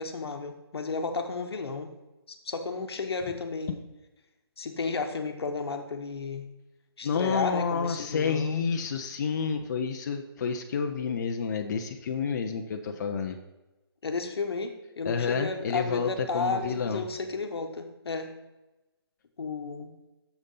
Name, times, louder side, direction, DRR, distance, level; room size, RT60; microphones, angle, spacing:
voice 1, 0.0-1.9 2.3-3.8 4.6-6.4 7.0-8.6 14.0-18.3 19.4-19.9, left 4 dB, 70° left, 5 dB, 1.2 m, -33 dB
voice 2, 7.0-13.4 15.0-17.1, left 6 dB, 45° left, 5 dB, 0.7 m, -29 dB
7.0 x 6.6 x 5.4 m, 1.0 s
hypercardioid pair, 155°, 13 cm